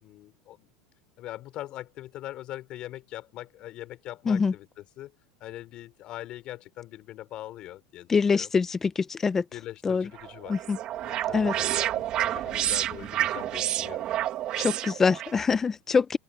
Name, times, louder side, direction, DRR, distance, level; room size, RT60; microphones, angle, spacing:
voice 1, 0.0-0.7 1.2-5.1 5.4-8.5 9.5-10.6 11.0-11.7 11.9-14.0, left 14 dB, 45° left, 3.6 m, -42 dB
voice 2, 8.1-9.4 9.8-10.1 10.5-10.8 11.3-11.5 14.6-16.2, left 5 dB, 15° left, 0.8 m, -24 dB
sound 1, 10.2-15.4, right 13 dB, 40° right, 2.7 m, -29 dB
open air
supercardioid pair, 145°, 2 cm